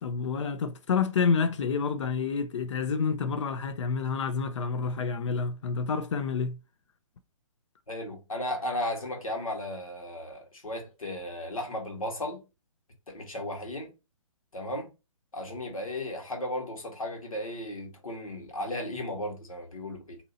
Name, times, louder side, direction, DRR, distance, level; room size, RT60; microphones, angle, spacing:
voice 1, 0.0-6.6, left 5 dB, 60° left, 0.5 m, -28 dB
voice 2, 7.9-12.4 13.1-13.9 14.5-14.9 15.3-20.2, left 1 dB, 85° left, 1.4 m, -35 dB
2.8 x 2.7 x 4.0 m
hypercardioid pair, 140°, 17 cm